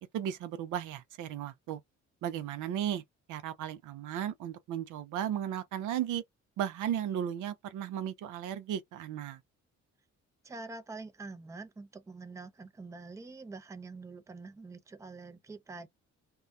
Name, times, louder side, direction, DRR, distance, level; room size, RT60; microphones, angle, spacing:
voice 1, 0.0-1.8 2.2-3.0 3.3-6.2 6.6-9.4, right 10 dB, 85° right, 0.6 m, -35 dB
voice 2, 10.4-15.9, right 3 dB, 10° right, 0.4 m, -45 dB
2.3 x 2.1 x 2.6 m
cardioid pair, 90°, 30 cm